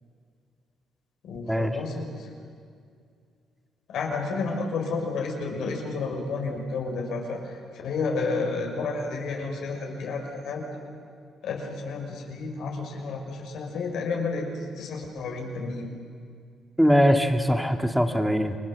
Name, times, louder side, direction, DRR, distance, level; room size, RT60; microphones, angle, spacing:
voice 1, 1.2-2.3 3.9-10.7 11.4-15.9, left 4 dB, 75° left, 1 dB, 5.7 m, -31 dB
voice 2, 16.8-18.6, equal, ahead, 5 dB, 2.2 m, -21 dB
29.0 x 22.5 x 7.5 m, 2.2 s
cardioid pair, 90°, 0 cm